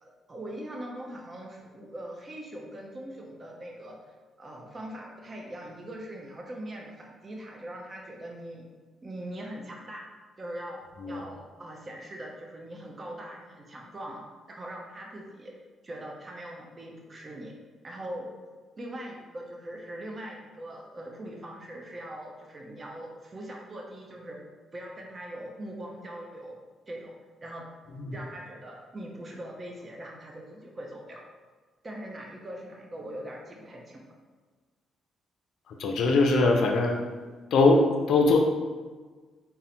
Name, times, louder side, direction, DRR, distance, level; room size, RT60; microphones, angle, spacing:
voice 1, 0.0-4.0 4.4-8.7 9.0-10.0 10.4-10.8 11.1-14.2 14.5-15.5 15.8-17.5 17.8-18.3 18.8-24.4 24.7-26.6 26.9-27.1 27.4-27.7 28.1-31.2 31.8-34.1, right 1 dB, 30° right, -1 dB, 0.7 m, -41 dB
voice 2, 35.7-37.0 37.5-38.4, left 3 dB, 70° left, 2 dB, 0.4 m, -22 dB
4.1 x 2.0 x 4.1 m, 1.4 s
cardioid pair, 90°, 0 cm